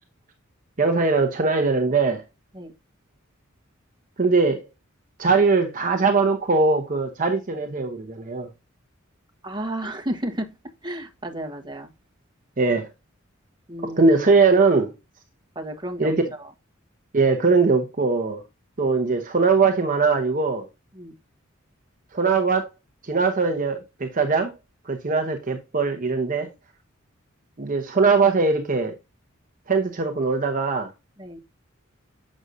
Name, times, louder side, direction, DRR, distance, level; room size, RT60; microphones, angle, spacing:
voice 1, 0.8-2.2 4.2-4.7 5.2-8.5 12.6-12.9 13.8-14.9 16.0-16.2 17.1-18.4 18.8-20.7 22.1-22.7 23.0-24.5 24.8-26.5 27.6-28.9 29.7-30.9, right 4 dB, 40° right, 0.9 m, -21 dB
voice 2, 9.4-10.5 10.8-11.9 13.7-14.0 15.5-16.1 21.0-21.1 31.2-31.4, right 1 dB, 20° right, 1.4 m, -32 dB
7.8 x 6.3 x 2.7 m
head